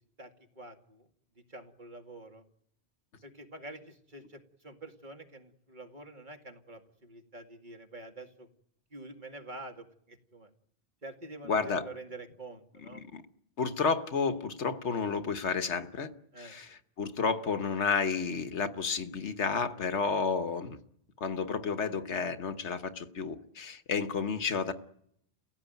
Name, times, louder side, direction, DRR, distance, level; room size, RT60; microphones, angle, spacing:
voice 1, 0.2-1.1 1.5-2.4 3.2-8.5 8.9-10.5 11.0-13.1 16.3-16.6, right 2 dB, 45° right, 4 dB, 2.3 m, -47 dB
voice 2, 11.4-11.8 12.9-13.2 13.6-16.1 16.4-20.8 21.2-24.7, left 5 dB, 85° left, 10 dB, 1.5 m, -31 dB
30.0 x 16.0 x 9.3 m, 0.73 s
omnidirectional pair, 1.1 m